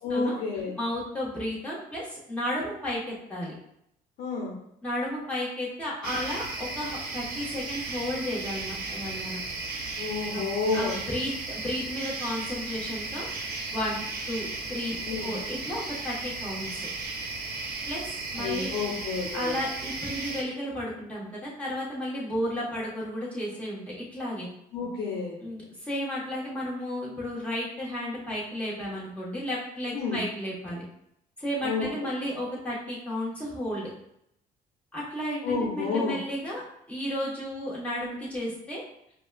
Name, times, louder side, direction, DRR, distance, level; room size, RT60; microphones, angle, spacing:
voice 1, 0.0-0.8 4.2-4.5 10.0-11.0 15.1-15.3 18.4-19.6 24.7-25.4 29.9-30.2 31.6-32.1 35.4-36.2, left 4 dB, 70° left, -2 dB, 0.8 m, -30 dB
voice 2, 0.8-3.5 4.8-9.4 10.3-10.5 10.7-16.9 17.9-18.7 19.3-24.5 25.4-30.8 31.4-33.9 34.9-36.6 36.9-38.8, equal, 10° left, -7 dB, 1.4 m, -33 dB
sound 1, 6.0-20.4, right 3 dB, 60° right, 0.9 m, -35 dB
4.9 x 2.3 x 2.4 m, 0.75 s
cardioid pair, 110°, 17 cm